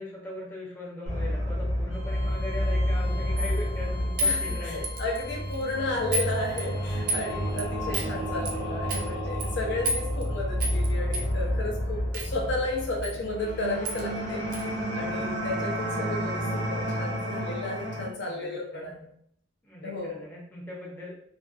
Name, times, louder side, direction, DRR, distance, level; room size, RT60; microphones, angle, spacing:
voice 1, 0.0-4.8 5.3-5.5 7.9-8.1 12.2-12.6 12.8-13.2 15.0-15.5 17.9-18.9 19.6-21.1, left 1 dB, 10° left, -6 dB, 0.6 m, -40 dB
sound 1, 1.1-18.1, equal, 60° right, 0.9 m, -30 dB
Bowed string instrument, 1.9-7.6, left 3 dB, 90° left, 0.8 m, -46 dB
sound 2, 3.4-3.6 4.2-5.2 5.5-5.7 6.1-6.3 6.6-7.2 7.6-7.7 7.9-8.1 8.4-8.5 8.9-9.1 9.4-9.5 9.8-10.3 10.6-10.9 11.1-11.3 12.1-12.3 13.0-13.2 13.4-13.5 13.8-14.0 14.5-14.6, equal, 45° right, 0.3 m, -30 dB
voice 2, 4.2-19.1 19.8-20.3, left 2 dB, 55° left, -1 dB, 0.4 m, -33 dB
2.4 x 2.2 x 2.4 m, 0.70 s
head